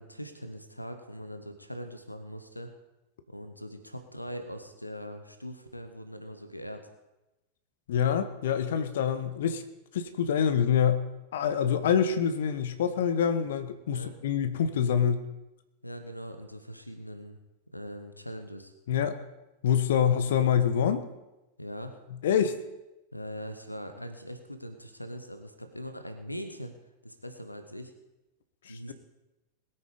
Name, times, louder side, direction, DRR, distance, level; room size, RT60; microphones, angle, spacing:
voice 1, 0.0-2.7 3.3-6.9 13.9-14.1 15.8-17.4 17.7-18.7 21.6-22.0 23.1-26.7 27.0-27.9 28.7-28.9, equal, 85° left, 8 dB, 1.2 m, -41 dB
voice 2, 7.9-9.6 9.9-11.1 11.3-15.2 18.9-19.2 19.6-21.1 22.2-22.6 28.7-28.9, left 8 dB, 60° left, 10 dB, 1.1 m, -26 dB
20.5 x 9.0 x 5.1 m, 0.99 s
figure-of-eight pair, 90°, 0 cm